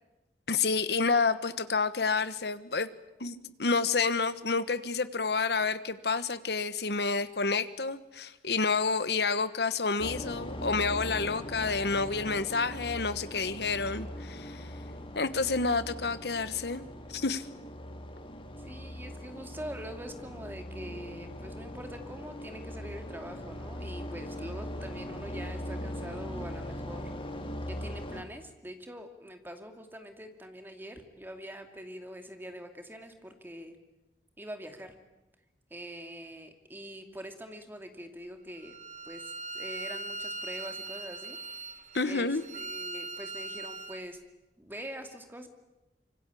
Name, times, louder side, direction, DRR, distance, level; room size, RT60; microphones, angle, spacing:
voice 1, 0.5-2.9 3.2-14.7 15.1-16.8 17.1-17.5 41.9-42.4, left 4 dB, 65° left, 13 dB, 1.3 m, -29 dB
sound 1, 10.0-28.2, left 1 dB, 30° left, 2.7 m, -40 dB
voice 2, 18.6-27.1 27.7-33.8 34.4-34.9 35.7-38.8 39.1-41.4 42.0-44.2 44.6-45.5, equal, 10° right, 6 dB, 2.5 m, -44 dB
Bowed string instrument, 38.6-44.0, right 3 dB, 45° right, 1.7 m, -40 dB
26.0 x 24.5 x 8.5 m, 0.99 s
head